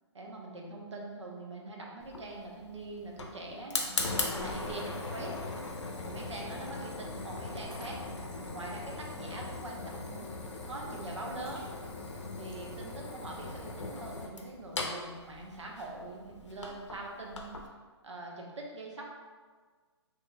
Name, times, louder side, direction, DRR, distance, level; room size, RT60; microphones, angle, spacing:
voice 1, 0.1-5.3 6.0-11.6 12.4-17.5 18.0-19.1, right 2 dB, 90° right, -1 dB, 0.8 m, -43 dB
Fire, 2.0-17.7, left 3 dB, 85° left, 0.6 m, -39 dB
Shatter, 7.7-8.4 11.4-12.2, equal, 55° right, 1.4 m, -55 dB
3.7 x 3.0 x 2.2 m, 1.5 s
hypercardioid pair, 140°, 15 cm